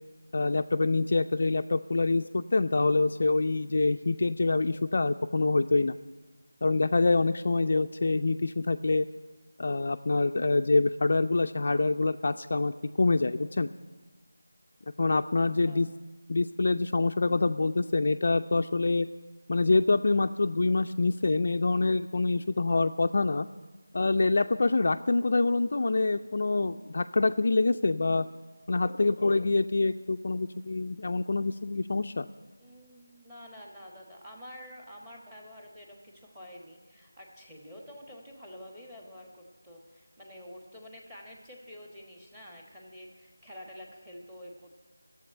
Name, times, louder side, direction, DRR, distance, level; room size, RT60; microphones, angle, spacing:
voice 1, 0.3-6.0 6.6-9.1 9.6-13.7 15.0-15.9 16.3-19.1 19.5-23.5 23.9-28.3 28.7-32.3, left 3 dB, 45° left, 8 dB, 0.4 m, -26 dB
voice 2, 32.6-44.9, equal, 10° right, 1 dB, 1.4 m, -48 dB
12.0 x 7.7 x 9.9 m, 1.2 s
figure-of-eight pair, 170°, 0 cm